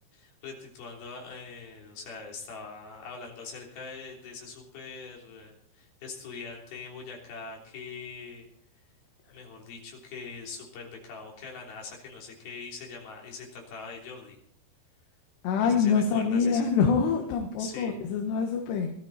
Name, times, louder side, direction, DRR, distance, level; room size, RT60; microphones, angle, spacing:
voice 1, 0.1-8.5 9.3-14.4 15.6-16.7 17.6-18.0, left 4 dB, 55° left, -1 dB, 5.0 m, -42 dB
voice 2, 15.4-18.9, left 6 dB, 70° left, 3 dB, 3.3 m, -25 dB
19.5 x 13.0 x 4.2 m, 0.66 s
omnidirectional pair, 5.4 m